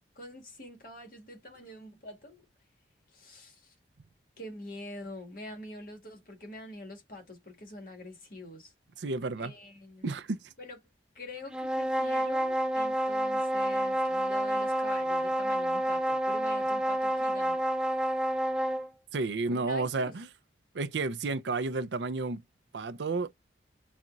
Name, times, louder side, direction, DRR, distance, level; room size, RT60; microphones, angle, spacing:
voice 1, 0.2-2.4 3.1-3.7 4.4-8.7 9.4-10.2 10.6-10.8 11.2-17.6 19.5-20.2, left 1 dB, 55° left, 1.9 m, -45 dB
voice 2, 9.0-9.5 10.0-10.4 19.1-20.3 20.7-22.4 22.7-23.3, right 3 dB, 85° right, 0.5 m, -31 dB
sound 1, 11.5-18.9, right 1 dB, 5° right, 0.4 m, -29 dB
4.2 x 2.4 x 3.9 m
head